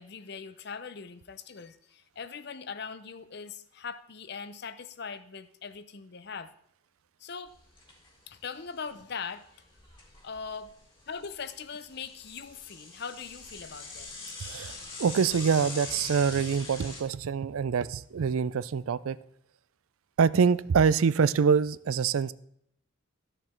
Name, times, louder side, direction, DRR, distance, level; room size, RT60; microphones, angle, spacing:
voice 1, 0.0-6.5 7.2-7.5 8.3-9.5 10.2-10.7 11.1-14.1, left 5 dB, 50° left, 0.6 m, -41 dB
Bicycle / Mechanisms, 7.5-8.1 8.4-8.5 8.8-8.9 9.5-10.7 11.1-17.0, left 3 dB, 25° left, 2.0 m, -42 dB
voice 2, 14.4-19.2 20.2-22.3, right 6 dB, 80° right, 0.4 m, -25 dB
13.0 x 6.6 x 4.4 m
head